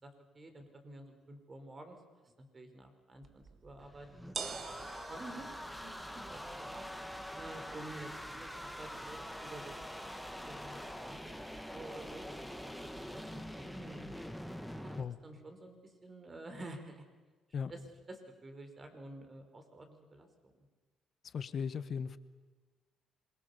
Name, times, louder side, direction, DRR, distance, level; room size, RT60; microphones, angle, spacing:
voice 1, 0.0-2.0 2.4-4.1 4.8-5.5 5.7-6.9 7.3-9.8 10.4-14.1 14.7-17.0 17.7-17.8 18.1-20.5, right 2 dB, 30° right, 6 dB, 4.7 m, -50 dB
sound 1, 3.2-13.3, right 6 dB, 45° right, 1.9 m, -51 dB
sound 2, 3.8-15.0, equal, ahead, 1.9 m, -45 dB
voice 2, 21.3-22.2, left 6 dB, 50° left, 14 dB, 1.2 m, -37 dB
26.5 x 22.5 x 7.0 m, 1.3 s
supercardioid pair, 80°, 0 cm